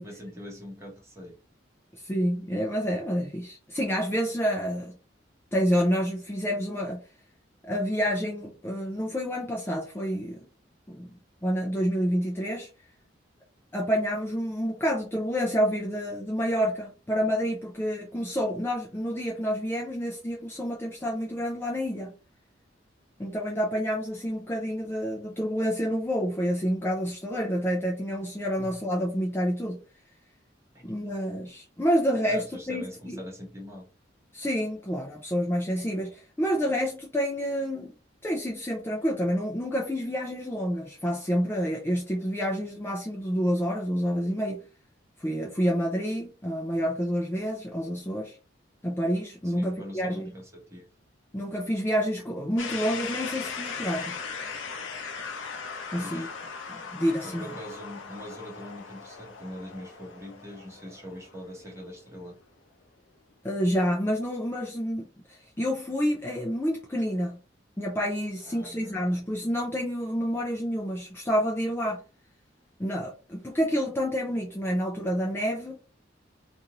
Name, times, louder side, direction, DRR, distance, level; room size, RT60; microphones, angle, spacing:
voice 1, 0.0-1.4 28.6-28.7 32.3-33.9 49.4-50.9 56.0-56.4 57.2-62.4 68.5-69.2, equal, 15° right, 1.0 m, -42 dB
voice 2, 1.9-4.9 5.5-7.0 7.6-10.5 10.9-11.1 11.4-12.7 13.7-22.1 23.2-29.8 30.8-33.2 34.3-37.9 38.2-44.6 45.2-48.4 48.8-50.3 51.3-54.2 55.9-56.3 56.7-57.5 63.4-67.4 67.8-72.0 72.8-75.8, equal, 15° left, 0.5 m, -28 dB
sound 1, 52.6-62.4, left 5 dB, 85° left, 0.6 m, -39 dB
2.6 x 2.5 x 2.9 m
head